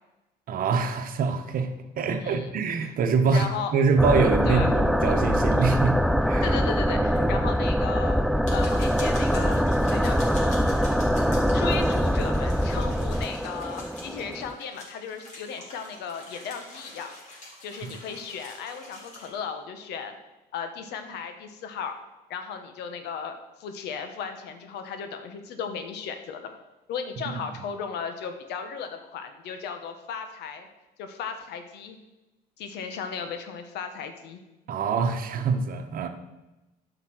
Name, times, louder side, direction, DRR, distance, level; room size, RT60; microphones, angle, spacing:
voice 1, 0.5-1.7 2.0-6.0 6.3-6.5 7.0-7.5 17.8-17.9 27.3-27.4 34.7-36.1, right 5 dB, 55° right, 7 dB, 1.2 m, -25 dB
voice 2, 3.3-3.7 4.5-4.7 6.4-8.2 8.5-10.9 11.5-17.1 17.6-20.1 20.5-22.0 22.3-26.5 26.9-30.7 31.0-32.0 32.6-34.4, left 6 dB, 80° left, 7 dB, 1.3 m, -36 dB
sound 1, 4.0-14.5, equal, ahead, 0.3 m, -23 dB
sound 2, 6.7-6.8 7.2-7.3 7.6-7.7 8.2-19.3, left 1 dB, 45° left, 3.8 m, -45 dB
9.6 x 5.8 x 6.1 m, 1.0 s
cardioid pair, 110°, 17 cm